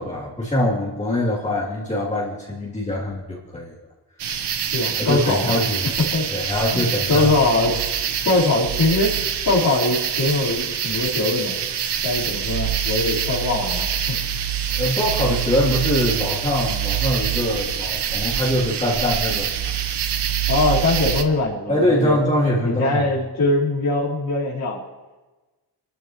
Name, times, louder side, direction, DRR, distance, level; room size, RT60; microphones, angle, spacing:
voice 1, 0.0-3.8 4.9-5.9 6.3-7.3 14.7-19.7 21.7-23.1, left 1 dB, 15° left, -7 dB, 3.0 m, -23 dB
sound 1, 4.2-21.2, right 9 dB, 90° right, 1.1 m, -25 dB
voice 2, 4.7-5.5 6.1-6.3 6.7-7.7 8.2-9.2 9.5-11.6 12.0-14.2 20.5-22.2 22.6-24.8, left 2 dB, 55° left, -8 dB, 4.1 m, -21 dB
28.0 x 13.0 x 3.1 m, 1.2 s
wide cardioid pair, 165°, 40 cm